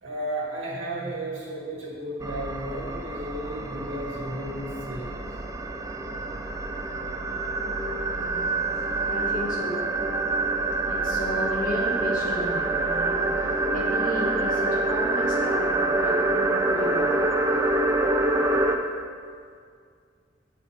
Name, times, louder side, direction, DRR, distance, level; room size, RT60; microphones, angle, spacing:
voice 1, 0.0-5.1, right 1 dB, 85° right, -4 dB, 1.8 m, -33 dB
sound 1, 2.2-18.8, right 2 dB, 15° right, 0.4 m, -26 dB
voice 2, 8.0-8.5 9.1-9.9 10.9-17.2, equal, 45° left, -4 dB, 1.5 m, -34 dB
7.4 x 6.8 x 3.3 m, 2.1 s
head